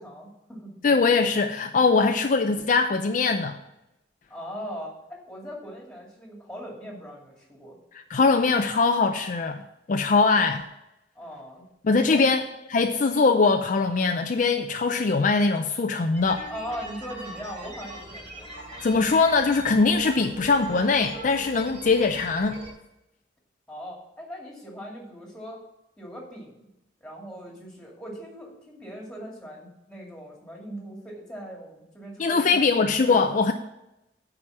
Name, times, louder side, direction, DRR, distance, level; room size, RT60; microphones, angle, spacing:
voice 1, 0.0-0.8 4.3-7.8 11.2-11.7 12.1-12.3 16.5-18.5 23.7-25.6 26.0-26.6 27.0-32.7 33.0-33.3, equal, 5° left, -1 dB, 2.4 m, -40 dB
voice 2, 0.8-3.6 8.1-9.6 9.9-10.7 11.8-12.4 12.7-16.4 18.8-22.6 32.2-33.5, left 4 dB, 45° left, 6 dB, 0.4 m, -22 dB
sound 1, 16.1-22.7, right 1 dB, 40° right, 3.3 m, -41 dB
8.7 x 5.0 x 7.2 m, 0.88 s
head